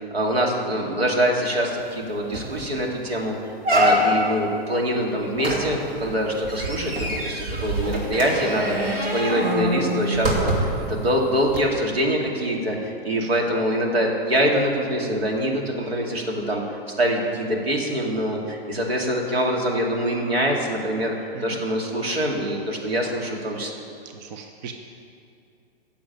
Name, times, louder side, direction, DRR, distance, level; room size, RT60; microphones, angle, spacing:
voice 1, 0.1-23.7, equal, 85° right, 0 dB, 2.4 m, -24 dB
sound 1, 1.9-2.0 2.3-2.6 3.0-3.1 3.6-4.4 5.4-10.9 11.5-11.6, equal, 60° right, 3.0 m, -24 dB
voice 2, 24.1-24.7, right 6 dB, 45° right, 5 dB, 0.9 m, -38 dB
10.5 x 7.0 x 9.2 m, 2.5 s
hypercardioid pair, 120°, 30 cm